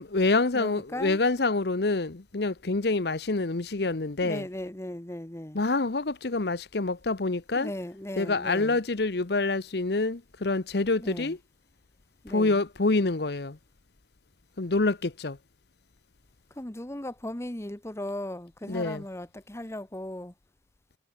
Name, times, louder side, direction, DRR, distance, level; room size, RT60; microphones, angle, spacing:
voice 1, 0.0-4.4 5.5-7.7 8.2-11.4 12.3-13.6 14.6-15.4 18.7-19.0, left 3 dB, 60° left, 0.9 m, -27 dB
voice 2, 0.5-1.2 4.2-5.6 7.5-8.8 11.0-11.4 12.2-12.6 16.5-20.3, left 1 dB, 15° left, 1.1 m, -37 dB
head